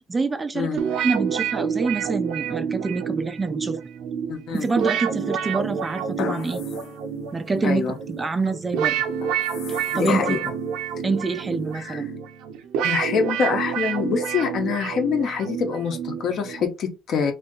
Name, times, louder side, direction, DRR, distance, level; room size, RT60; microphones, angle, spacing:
voice 1, 0.1-3.8 4.5-6.6 7.3-9.0 9.7-10.4 11.0-12.1, right 4 dB, 20° right, 0.4 m, -26 dB
sound 1, 0.8-16.7, right 7 dB, 80° right, 0.6 m, -28 dB
voice 2, 4.3-4.7 7.6-7.9 9.9-10.4 11.7-12.0 12.8-17.3, left 6 dB, 55° left, 0.9 m, -25 dB
sound 2, 4.5-5.2 6.2-7.0 7.5-7.6 9.2-10.6 11.7-11.8, left 9 dB, 75° left, 0.5 m, -33 dB
2.7 x 2.7 x 3.8 m
cardioid pair, 120°, 0 cm